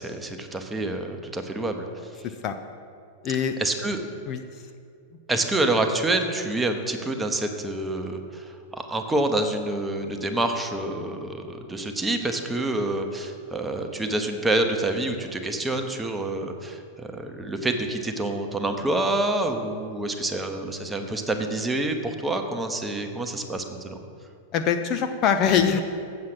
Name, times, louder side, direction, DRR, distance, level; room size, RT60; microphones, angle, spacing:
voice 1, 0.0-1.9 3.6-4.0 5.3-24.0, right 2 dB, 10° right, 5 dB, 0.8 m, -27 dB
voice 2, 3.2-3.6 4.3-4.6 24.5-25.8, left 7 dB, 35° left, 8 dB, 0.4 m, -23 dB
7.4 x 7.4 x 6.1 m, 2.4 s
figure-of-eight pair, 90°, 0 cm